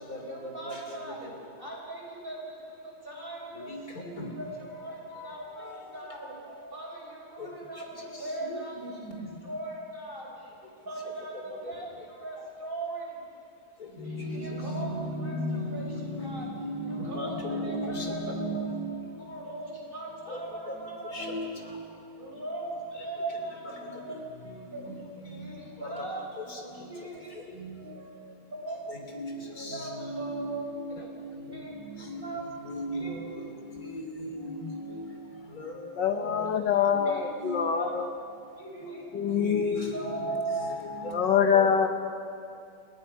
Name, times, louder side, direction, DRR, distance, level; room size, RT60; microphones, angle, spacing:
voice 1, 0.1-1.3 1.6-6.3 6.7-9.1 9.4-13.2 14.0-14.9 15.2-15.9 16.2-16.5 16.8-18.7 19.2-21.3 21.6-21.8 22.2-24.8 25.2-26.2 26.7-27.4 28.6-28.9 29.7-31.1 31.5-31.8 32.2-32.4 32.9-33.2 34.7-35.2 35.9-36.0 36.4-36.6 37.0-37.4 37.7-37.9 38.5-39.4 39.9-40.6 41.2-41.9, right 2 dB, 30° right, -3 dB, 6.1 m, -39 dB
voice 2, 5.1-5.8 6.5-6.6 8.5-9.3 14.0-18.9 20.3-20.4 21.1-21.6 23.7-24.0 24.7-24.9 25.4-25.5 25.8-26.1 26.4-26.8 27.5-27.7 28.9-31.0 31.5-33.4 33.7-35.1 35.6-35.9 36.2-36.5 36.9-37.5 39.4-41.7, equal, 55° left, 2 dB, 3.7 m, -36 dB
voice 3, 36.0-38.1 39.1-39.8 41.1-41.9, left 7 dB, 75° left, 7 dB, 1.7 m, -25 dB
29.5 x 21.0 x 5.6 m, 2.5 s
omnidirectional pair, 1.9 m